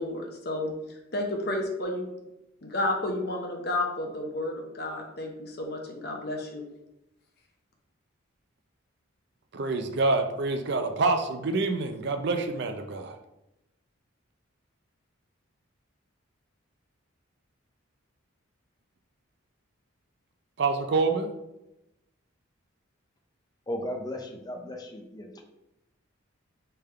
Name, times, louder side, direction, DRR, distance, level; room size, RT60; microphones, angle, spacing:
voice 1, 0.0-2.1 2.6-6.6, left 1 dB, 50° left, 2 dB, 0.8 m, -31 dB
voice 2, 9.5-13.2 20.6-21.4, right 3 dB, 55° right, 6 dB, 0.4 m, -27 dB
voice 3, 23.7-25.5, left 1 dB, 20° left, 3 dB, 0.5 m, -36 dB
3.6 x 3.4 x 4.3 m, 0.90 s
head